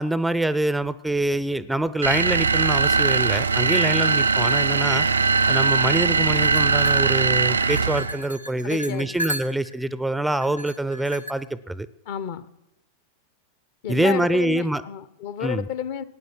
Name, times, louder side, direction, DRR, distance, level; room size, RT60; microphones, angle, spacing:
voice 1, 0.0-5.1 5.5-11.9 13.9-14.8 15.4-15.7, right 1 dB, 5° right, 16 dB, 0.4 m, -25 dB
sound 1, 2.0-8.2, right 4 dB, 75° right, 0.4 m, -20 dB
sound 2, 6.3-9.8 10.4-11.3, right 1 dB, 85° left, 0.8 m, -35 dB
voice 2, 8.6-9.1 12.1-12.4 13.8-16.0, left 10 dB, 50° left, 15 dB, 0.8 m, -31 dB
17.0 x 9.4 x 6.1 m, 0.88 s
figure-of-eight pair, 90°, 0 cm